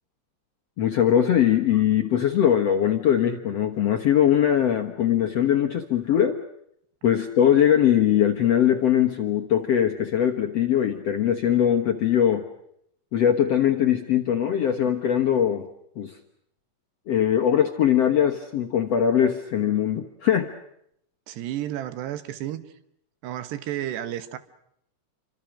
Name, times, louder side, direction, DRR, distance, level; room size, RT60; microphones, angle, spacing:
voice 1, 0.8-6.4 7.0-12.5 13.1-15.7 16.0-16.1 17.1-20.5, left 9 dB, 65° left, 1.6 m, -21 dB
voice 2, 21.3-22.6 23.2-24.4, right 12 dB, 85° right, 3.5 m, -31 dB
28.5 x 25.5 x 6.4 m
omnidirectional pair, 4.7 m